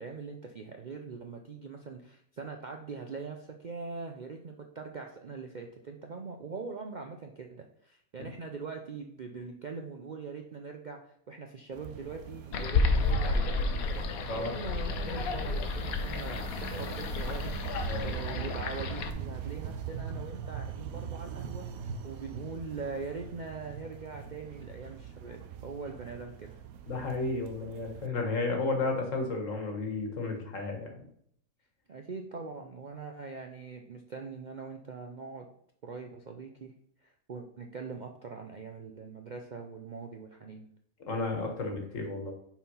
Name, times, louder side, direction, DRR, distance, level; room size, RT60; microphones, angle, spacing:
voice 1, 0.0-11.0 11.3-26.6 31.9-35.5 35.8-36.7 37.0-40.6, right 4 dB, 50° right, 3 dB, 0.5 m, -42 dB
sound 1, 11.7-28.1, right 8 dB, 90° right, 1.1 m, -42 dB
sound 2, 12.5-19.1, left 3 dB, 80° left, 1.2 m, -31 dB
voice 2, 26.9-30.9 41.1-42.3, left 3 dB, 65° left, 3 dB, 1.8 m, -32 dB
5.9 x 4.4 x 5.4 m, 0.67 s
omnidirectional pair, 1.5 m